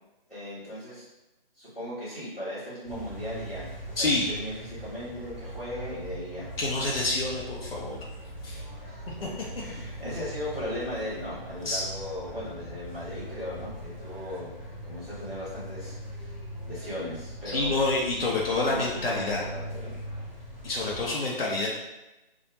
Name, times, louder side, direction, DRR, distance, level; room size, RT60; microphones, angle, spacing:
voice 1, 0.3-1.0 1.6-6.5 8.8-14.5 14.9-16.3 16.6-17.7 18.2-20.0, left 1 dB, ahead, -20 dB, 0.6 m, -37 dB
sound 1, 2.8-21.1, right 1 dB, 35° left, 0.9 m, -41 dB
voice 2, 4.0-4.3 6.6-8.0 8.4-8.6 11.6-11.8 17.5-19.4 20.6-21.7, left 2 dB, 75° left, -4 dB, 0.7 m, -27 dB
2.3 x 2.2 x 2.9 m, 0.99 s
figure-of-eight pair, 155°, 29 cm